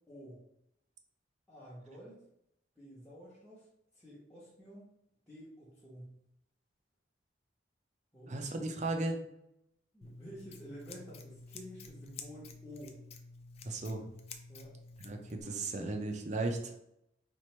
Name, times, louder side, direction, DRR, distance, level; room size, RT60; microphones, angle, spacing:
voice 1, 0.1-0.4 1.5-2.2 2.8-3.7 3.9-4.9 5.3-6.2 8.1-8.4 9.9-13.0 14.5-14.8, equal, 5° left, -9 dB, 0.9 m, -50 dB
voice 2, 8.3-9.2 13.6-14.0 15.0-16.7, right 2 dB, 40° right, 5 dB, 0.5 m, -35 dB
Scissors, 10.0-15.4, left 4 dB, 35° left, 0.3 m, -51 dB
3.0 x 2.5 x 4.3 m, 0.78 s
head